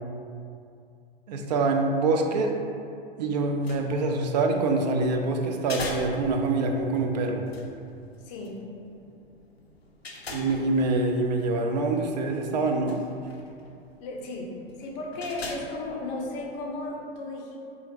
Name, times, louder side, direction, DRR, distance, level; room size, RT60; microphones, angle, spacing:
voice 1, 1.3-2.5 3.2-7.4 10.3-13.0, right 3 dB, 45° right, 3 dB, 0.4 m, -25 dB
sound 1, 3.4-16.9, left 3 dB, 90° left, 0.4 m, -44 dB
voice 2, 8.2-8.6 14.0-17.6, left 2 dB, 30° left, -1 dB, 0.5 m, -35 dB
4.1 x 2.5 x 2.8 m, 2.4 s
figure-of-eight pair, 100°, 30 cm